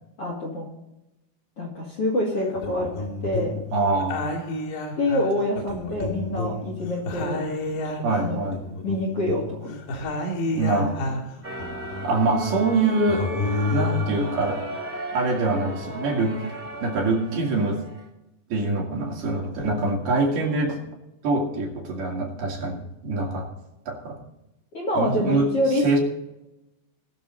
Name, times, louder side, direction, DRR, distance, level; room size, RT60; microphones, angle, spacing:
voice 1, 0.2-0.7 1.6-2.9 3.2-3.6 5.0-7.4 8.0-8.5 8.8-10.0 24.7-26.0, left 1 dB, 40° left, -1 dB, 2.7 m, -26 dB
sound 1, 2.4-3.7 4.0-6.7 7.0-11.3 11.6-12.7 13.1-14.2, left 2 dB, 80° left, 4.5 m, -30 dB
voice 2, 3.7-4.3 8.0-8.6 10.5-11.2 12.0-13.3 13.7-14.6 15.1-16.4 16.8-17.8 18.5-20.8 21.2-23.5 23.9-24.2 25.0-25.5 25.8-26.0, right 3 dB, 70° right, -1 dB, 3.9 m, -24 dB
sound 2, 11.4-18.1, right 2 dB, 45° right, 0.6 m, -36 dB
20.0 x 6.9 x 3.9 m, 0.93 s
omnidirectional pair, 4.7 m